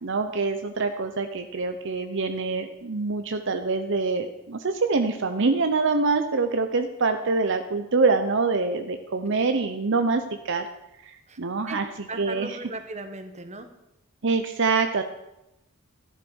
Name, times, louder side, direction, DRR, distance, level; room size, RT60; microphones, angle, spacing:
voice 1, 0.0-10.6 11.0-11.8 12.2-12.6 14.2-15.0, right 3 dB, 60° right, 7 dB, 0.9 m, -25 dB
voice 2, 12.1-13.7, right 2 dB, 35° right, 8 dB, 1.5 m, -37 dB
14.0 x 11.0 x 6.3 m, 0.90 s
head